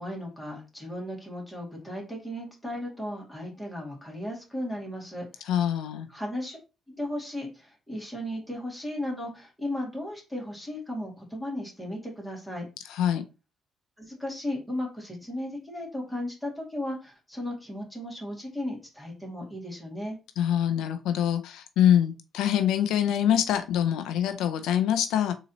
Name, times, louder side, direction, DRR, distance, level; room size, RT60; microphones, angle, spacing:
voice 1, 0.0-5.3 6.1-6.6 6.9-12.7 14.0-20.2, left 1 dB, 5° left, -2 dB, 2.1 m, -35 dB
voice 2, 5.5-6.1 12.9-13.2 20.4-25.3, left 10 dB, 90° left, 9 dB, 0.4 m, -24 dB
3.9 x 2.8 x 4.0 m, 0.30 s
cardioid pair, 90°, 0 cm